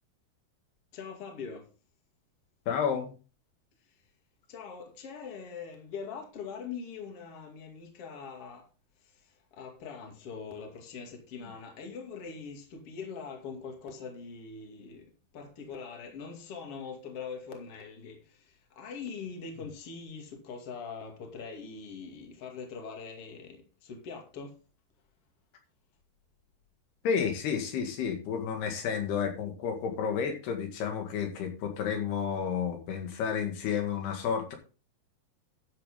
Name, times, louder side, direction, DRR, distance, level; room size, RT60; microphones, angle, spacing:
voice 1, 0.9-1.7 4.5-8.7 9.0-24.6, left 5 dB, 40° left, 2.9 m, -42 dB
voice 2, 2.7-3.1 27.0-34.6, left 7 dB, 85° left, 4.0 m, -31 dB
13.0 x 7.5 x 3.8 m
omnidirectional pair, 4.5 m